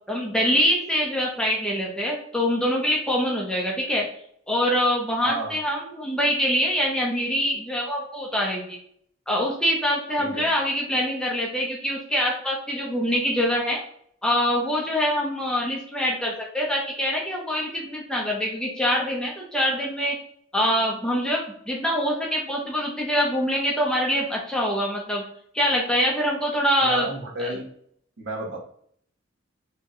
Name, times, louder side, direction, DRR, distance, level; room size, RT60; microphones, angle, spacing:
voice 1, 0.0-4.0 4.5-8.8 9.3-13.8 14.2-20.2 20.5-21.4 21.7-25.2 25.5-27.1 27.4-27.5, equal, 5° left, -2 dB, 0.5 m, -24 dB
voice 2, 5.2-5.6 10.2-10.5 26.8-27.7 28.2-28.6, right 2 dB, 55° right, -1 dB, 0.8 m, -32 dB
2.7 x 2.1 x 3.6 m, 0.66 s
head